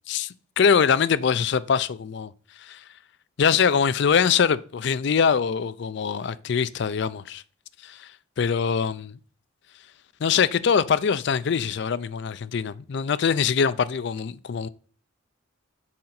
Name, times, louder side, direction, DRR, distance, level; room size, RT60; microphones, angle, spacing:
voice 1, 0.1-2.3 2.6-2.8 3.4-7.4 7.8-8.1 8.4-9.2 10.2-14.7, left 6 dB, 55° left, 0.4 m, -23 dB
6.3 x 4.3 x 3.9 m
head